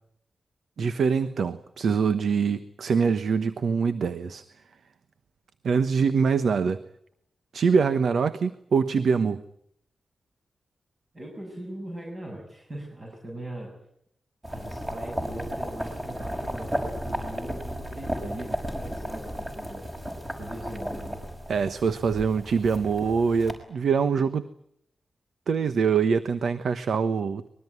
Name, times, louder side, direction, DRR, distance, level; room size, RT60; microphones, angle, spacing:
voice 1, 0.8-4.4 5.6-6.8 7.5-9.4 21.5-24.5 25.5-27.5, right 5 dB, 75° right, 12 dB, 1.1 m, -24 dB
voice 2, 11.1-13.7 14.5-19.9 20.4-21.2, right 1 dB, 30° right, -1 dB, 7.3 m, -40 dB
sound 1, 14.4-23.5, equal, 15° right, 5.8 m, -34 dB
24.5 x 21.5 x 9.6 m, 0.72 s
wide cardioid pair, 170°, 0 cm